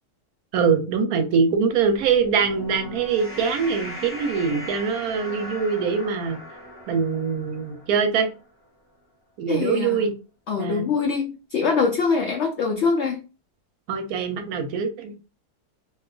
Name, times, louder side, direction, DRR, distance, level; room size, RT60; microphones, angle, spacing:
voice 1, 0.5-6.4 6.9-8.3 9.4-10.2 10.6-10.9 13.9-15.3, right 5 dB, 75° right, 1.0 m, -23 dB
sound 1, 1.8-8.4, equal, 10° left, 0.8 m, -39 dB
voice 2, 9.5-10.0 10.5-13.2, left 5 dB, 80° left, 0.6 m, -23 dB
2.6 x 2.3 x 3.7 m
omnidirectional pair, 1.7 m